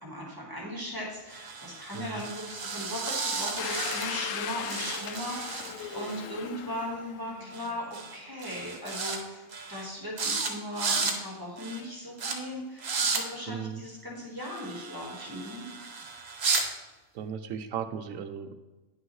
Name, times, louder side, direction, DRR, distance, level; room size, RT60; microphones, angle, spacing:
voice 1, 0.0-7.8 8.1-15.7, equal, 15° right, -3 dB, 1.6 m, -38 dB
sound 1, 1.3-4.4 4.7-6.2 7.5-7.7 7.9-8.2 8.4-9.2 9.5-9.9 10.2-10.5 10.7-11.2 11.6-11.8 12.2-12.3 12.8-13.2 14.4-16.6, right 4 dB, 50° right, 1.2 m, -33 dB
Domestic sounds home sounds, 3.6-8.2, left 8 dB, 75° left, 0.9 m, -38 dB
voice 2, 13.5-13.8 17.1-18.5, right 7 dB, 75° right, 9 dB, 1.0 m, -36 dB
10.0 x 6.0 x 3.1 m, 1.1 s
omnidirectional pair, 1.4 m